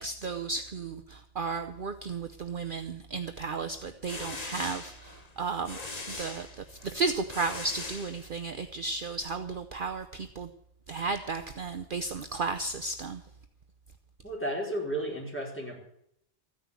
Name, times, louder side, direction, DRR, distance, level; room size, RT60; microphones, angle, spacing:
voice 1, 0.0-5.8 6.2-10.5 10.9-13.2, right 4 dB, 50° right, 8 dB, 0.9 m, -34 dB
sound 1, 3.8-8.7, left 3 dB, 35° left, 1.5 m, -41 dB
voice 2, 14.2-15.8, right 1 dB, 10° left, -2 dB, 4.8 m, -33 dB
14.5 x 10.0 x 8.2 m, 0.75 s
omnidirectional pair, 1.2 m